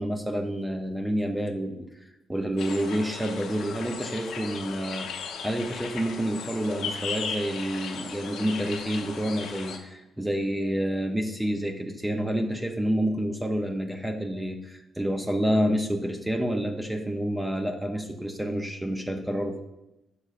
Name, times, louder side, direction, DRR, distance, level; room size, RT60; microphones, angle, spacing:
voice 1, 0.0-1.9 2.3-19.7, equal, 10° right, 4 dB, 0.5 m, -28 dB
sound 1, 2.6-9.8, left 6 dB, 75° left, 0.7 m, -36 dB
6.7 x 5.9 x 2.5 m, 0.95 s
cardioid pair, 90°, 0 cm